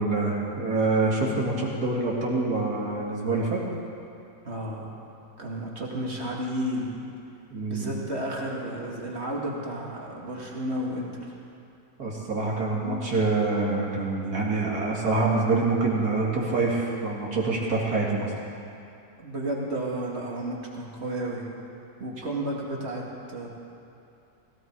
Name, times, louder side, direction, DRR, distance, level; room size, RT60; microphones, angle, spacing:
voice 1, 0.0-3.6 7.5-8.0 12.0-18.3, right 3 dB, 70° right, -3 dB, 2.5 m, -26 dB
voice 2, 4.4-4.9 5.4-7.0 7.7-11.3 12.8-13.2 19.2-21.5 22.0-23.5, right 1 dB, 40° right, -2 dB, 2.4 m, -32 dB
17.5 x 17.0 x 4.7 m, 2.6 s
omnidirectional pair, 1.7 m